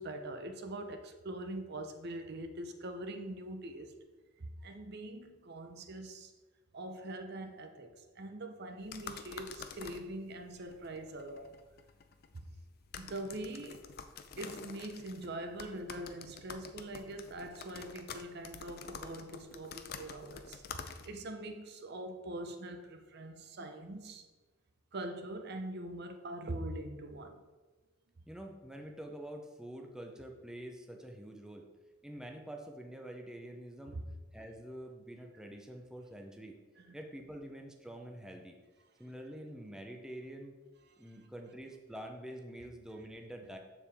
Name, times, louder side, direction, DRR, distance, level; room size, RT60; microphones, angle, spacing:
voice 1, 0.0-3.9 4.4-6.3 6.7-11.6 12.3-12.5 12.9-13.8 14.4-24.2 24.9-27.4 33.9-34.1 36.8-37.0 40.9-41.0, right 1 dB, 55° right, 0.7 m, -43 dB
sound 1, 8.8-21.3, left 6 dB, 50° left, 0.5 m, -49 dB
voice 2, 28.3-31.7 32.0-34.0 34.3-36.6 36.9-38.6 39.0-40.6 41.0-43.6, right 1 dB, 5° right, 0.6 m, -46 dB
7.2 x 6.8 x 3.5 m
head